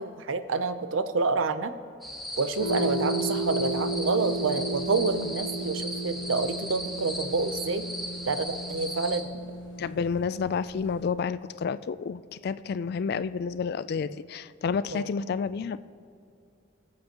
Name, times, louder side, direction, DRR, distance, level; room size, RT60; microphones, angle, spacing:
voice 1, 0.0-1.7 2.4-7.8 8.3-9.3 14.9-15.1, right 4 dB, 90° right, 11 dB, 0.6 m, -28 dB
sound 1, 2.0-9.2, equal, ahead, 0.9 m, -37 dB
sound 2, 2.6-11.1, right 1 dB, 70° left, 1.4 m, -34 dB
voice 2, 9.8-15.8, left 5 dB, 55° left, 15 dB, 0.3 m, -30 dB
21.5 x 7.6 x 2.9 m, 2.5 s
head